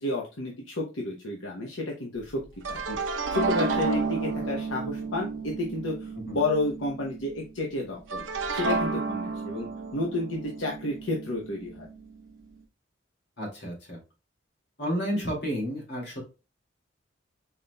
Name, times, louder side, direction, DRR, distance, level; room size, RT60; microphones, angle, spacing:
voice 1, 0.0-2.4 2.7-8.2 8.5-11.9, left 2 dB, 85° left, -1 dB, 0.9 m, -31 dB
sound 1, 2.3-7.5 8.1-12.2, right 4 dB, 85° right, 0.8 m, -32 dB
voice 2, 13.4-14.0 14.8-16.2, equal, 65° left, -1 dB, 2.3 m, -31 dB
5.8 x 4.0 x 2.2 m, 0.30 s
head